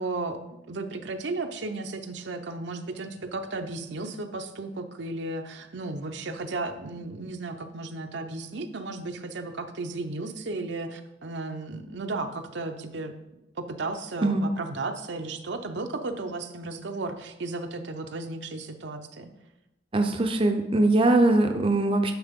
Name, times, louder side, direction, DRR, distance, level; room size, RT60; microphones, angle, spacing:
voice 1, 0.0-13.1 13.6-19.3, right 3 dB, 70° right, 6 dB, 0.7 m, -34 dB
voice 2, 19.9-22.1, right 2 dB, 30° right, 4 dB, 0.6 m, -21 dB
10.5 x 6.1 x 3.6 m, 0.91 s
head